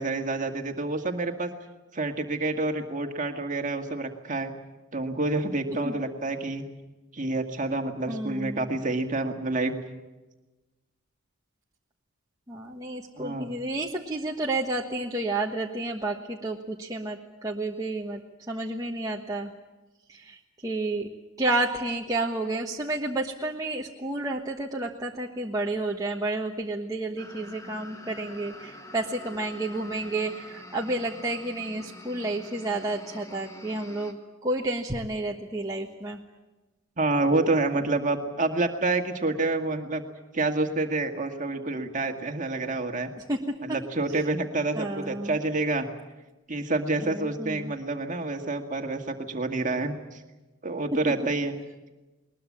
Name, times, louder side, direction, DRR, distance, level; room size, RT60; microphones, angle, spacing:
voice 1, 0.0-1.5 1.9-4.5 4.9-6.6 7.1-9.7 13.2-13.5 37.0-40.0 40.3-43.1 43.7-45.9 46.5-50.2 50.6-51.6, right 2 dB, 35° right, 5 dB, 1.9 m, -28 dB
voice 2, 8.0-8.9 12.5-19.5 20.1-21.1 21.4-36.2 43.2-43.4 43.7-43.8 44.1-44.3 44.7-45.4 47.0-47.7, right 2 dB, 15° right, -2 dB, 1.3 m, -31 dB
sound 1, 27.2-34.1, left 1 dB, 15° left, 1.7 m, -45 dB
21.0 x 21.0 x 8.6 m, 1.1 s
head